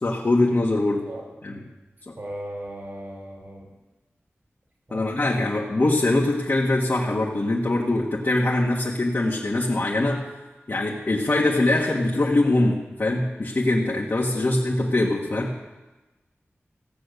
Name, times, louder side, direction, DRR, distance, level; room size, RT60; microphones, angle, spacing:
voice 1, 0.0-1.0 1.4-1.5 2.1-2.2 4.9-10.2 10.7-15.5, left 2 dB, 55° left, -3 dB, 1.5 m, -23 dB
voice 2, 2.2-3.7 4.9-5.0 14.2-14.5, right 1 dB, 55° right, -2 dB, 3.4 m, -37 dB
16.0 x 7.7 x 6.7 m, 1.1 s
wide cardioid pair, 55°, 5 cm